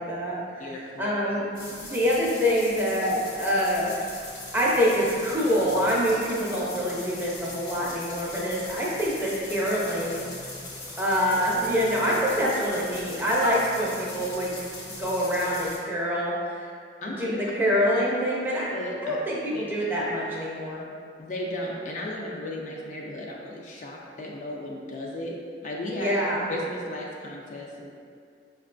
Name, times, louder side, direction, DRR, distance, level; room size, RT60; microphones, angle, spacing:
voice 1, 0.0-0.7 1.0-1.5 1.8-3.9 4.5-10.3 11.0-14.6 15.0-16.7 17.2-18.7 19.0-20.8 26.0-26.4, equal, 10° right, -6 dB, 0.5 m, -25 dB
voice 2, 0.6-1.1 17.0-17.2 18.7-19.2 19.5-19.6 21.2-25.4 25.6-26.1 26.5-27.9, left 1 dB, 45° left, -2 dB, 0.3 m, -35 dB
sound 1, 1.5-15.8, left 2 dB, 70° left, 1.0 m, -40 dB
5.4 x 2.2 x 2.5 m, 2.3 s
head